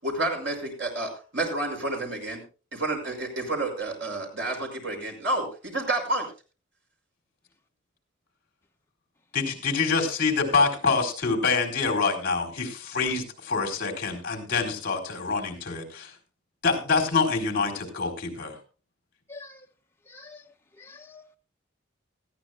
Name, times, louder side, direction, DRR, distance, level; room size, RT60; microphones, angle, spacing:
voice 1, 0.0-2.4 2.7-6.3, right 2 dB, 65° right, 3 dB, 5.6 m, -30 dB
voice 2, 9.3-16.1 16.6-18.5, left 4 dB, 50° left, 4 dB, 4.0 m, -26 dB
voice 3, 19.3-19.6 20.1-20.4 20.8-21.4, left 3 dB, 10° left, 2 dB, 1.0 m, -46 dB
20.0 x 14.5 x 2.2 m, 0.34 s
head